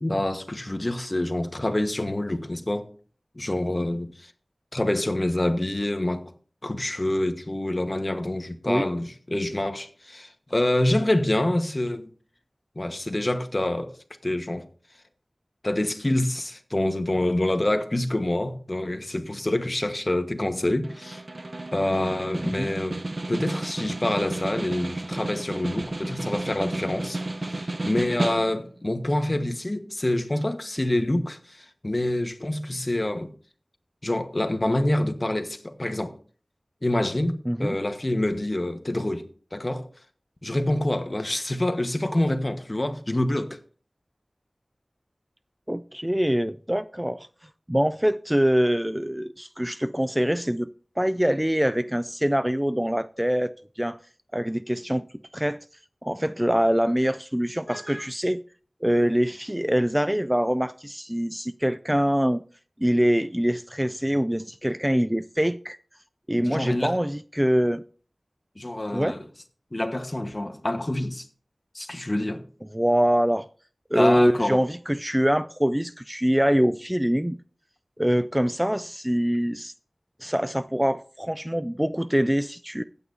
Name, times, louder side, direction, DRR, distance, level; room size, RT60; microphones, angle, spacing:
voice 1, 0.0-2.9 3.3-4.3 4.7-6.3 6.6-12.1 12.7-13.9 14.2-14.6 15.6-21.2 21.7-23.0 23.3-33.3 34.0-36.1 36.8-39.3 39.5-39.8 40.4-43.6 66.4-67.0 68.6-69.2 69.7-71.3 71.7-72.5 73.9-74.6, left 1 dB, 35° left, 1.3 m, -26 dB
Snare drum, 20.8-28.8, right 2 dB, 55° right, 0.8 m, -32 dB
voice 2, 22.4-22.7 37.5-37.8 45.7-47.3 47.7-50.7 51.0-54.0 54.3-55.1 55.3-55.6 56.0-58.4 58.8-62.4 62.8-65.8 66.3-67.8 68.9-69.1 72.7-73.5 73.9-77.4 78.0-79.7 80.2-82.8, equal, 10° right, 0.3 m, -24 dB
16.0 x 8.6 x 2.7 m
wide cardioid pair, 55°, 0 cm